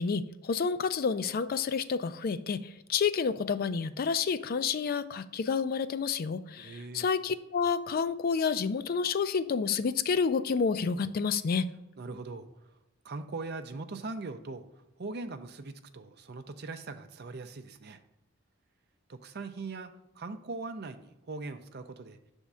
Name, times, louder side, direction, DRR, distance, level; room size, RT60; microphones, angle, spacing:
voice 1, 0.0-11.7, left 5 dB, 45° left, 12 dB, 0.4 m, -29 dB
voice 2, 6.6-7.1 12.0-12.5 13.0-14.6 15.0-18.0 19.1-22.2, right 3 dB, 55° right, 8 dB, 0.6 m, -40 dB
6.1 x 3.6 x 5.4 m, 0.92 s
head